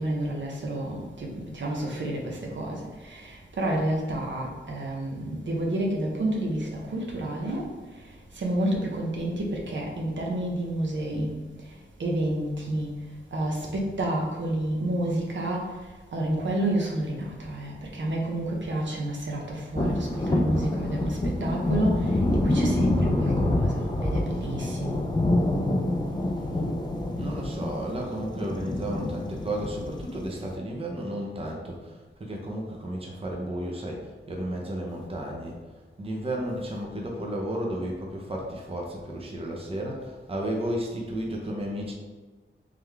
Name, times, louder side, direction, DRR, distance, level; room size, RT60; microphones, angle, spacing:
voice 1, 0.0-7.7 8.0-11.4 11.7-11.8 12.0-12.9 13.3-15.8 16.1-25.0, right 1 dB, 65° right, -1 dB, 0.8 m, -30 dB
sound 1, 19.8-30.6, left 1 dB, 20° left, 0.4 m, -27 dB
voice 2, 27.2-35.6 36.0-41.9, right 1 dB, 30° right, -1 dB, 0.6 m, -33 dB
3.7 x 3.3 x 3.4 m, 1.3 s
wide cardioid pair, 120°, 21 cm